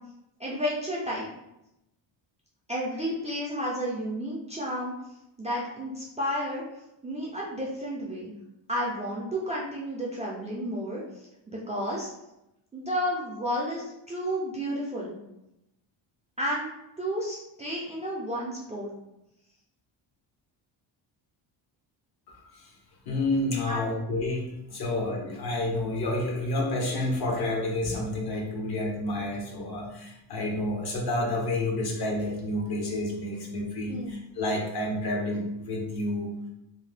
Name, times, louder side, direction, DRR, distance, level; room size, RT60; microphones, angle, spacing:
voice 1, 0.4-1.3 2.7-4.9 5.4-6.6 7.0-8.3 8.7-11.0 11.5-12.1 12.7-15.2 16.4-16.7 17.0-18.9 23.7-23.9 33.9-34.1, equal, 15° right, -5 dB, 0.3 m, -31 dB
voice 2, 22.3-22.7 23.1-36.3, left 1 dB, 55° left, 0 dB, 0.8 m, -29 dB
2.6 x 2.1 x 3.3 m, 0.87 s
cardioid pair, 140°, 46 cm